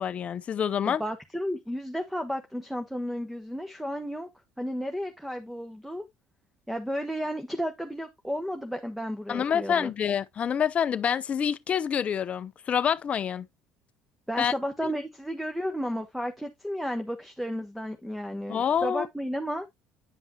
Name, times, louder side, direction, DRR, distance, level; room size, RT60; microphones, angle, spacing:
voice 1, 0.0-1.0 9.3-13.5 14.4-14.5 14.8-14.9 18.5-19.1, left 8 dB, 45° left, 0.5 m, -27 dB
voice 2, 0.9-4.3 4.6-6.0 6.7-9.9 14.3-19.7, equal, ahead, 1.1 m, -33 dB
9.4 x 5.5 x 2.8 m
hypercardioid pair, 65°, 3 cm